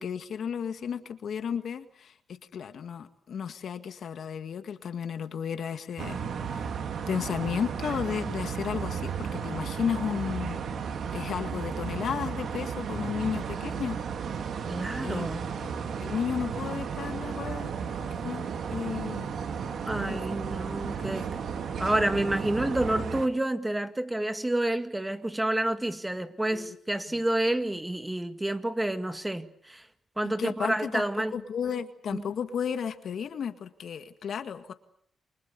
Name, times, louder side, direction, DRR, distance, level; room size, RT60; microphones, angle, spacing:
voice 1, 0.0-6.7 7.1-10.6 11.1-14.0 15.0-15.3 16.0-17.7 18.2-19.3 20.0-20.4 21.0-21.4 26.5-26.8 27.1-27.2 30.2-31.0 31.3-34.7, left 7 dB, 70° left, 1.9 m, -33 dB
sound 1, 6.0-23.3, right 6 dB, 70° right, 2.5 m, -34 dB
voice 2, 14.7-15.5 19.8-21.3 21.8-29.9 30.2-31.4 32.1-32.2, right 1 dB, 10° right, 2.0 m, -29 dB
29.0 x 24.0 x 6.9 m
cardioid pair, 80°, 0 cm